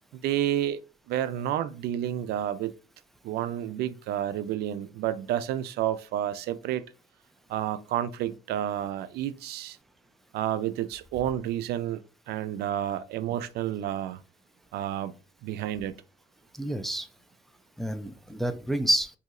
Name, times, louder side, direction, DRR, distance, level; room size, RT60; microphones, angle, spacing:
voice 1, 0.2-0.8 1.1-2.7 3.2-6.8 7.5-9.8 10.3-12.0 12.3-14.2 14.7-15.1 15.4-15.9, right 11 dB, 70° right, 0.4 m, -30 dB
voice 2, 16.5-17.1 17.8-19.2, right 1 dB, ahead, 0.3 m, -28 dB
4.0 x 2.7 x 2.4 m
cardioid pair, 110°, 17 cm